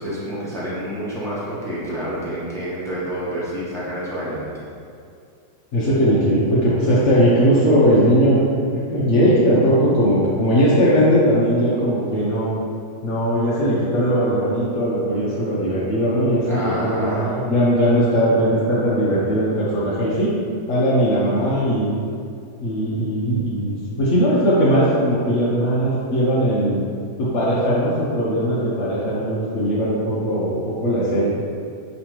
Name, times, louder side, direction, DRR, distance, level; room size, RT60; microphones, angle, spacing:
voice 1, 0.0-4.6 16.5-17.5, equal, 5° left, -9 dB, 0.4 m, -28 dB
voice 2, 5.7-8.4 8.7-12.5 13.0-20.3 20.7-21.9 22.6-26.8 27.2-31.3, equal, 60° left, -8 dB, 0.8 m, -19 dB
5.3 x 3.1 x 3.0 m, 2.4 s
omnidirectional pair, 1.9 m